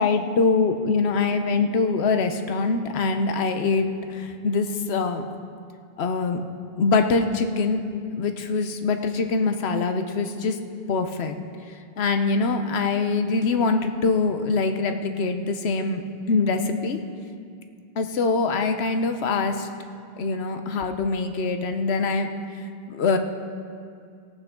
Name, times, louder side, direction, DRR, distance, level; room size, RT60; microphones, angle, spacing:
voice 1, 0.0-5.3 6.0-6.5 6.8-7.8 8.2-10.6 10.9-11.4 11.7-16.0 16.3-17.0 18.0-19.7 20.2-22.3 22.9-23.2, left 4 dB, 80° left, 7 dB, 1.0 m, -24 dB
18.0 x 8.8 x 3.7 m, 2.4 s
omnidirectional pair, 1.1 m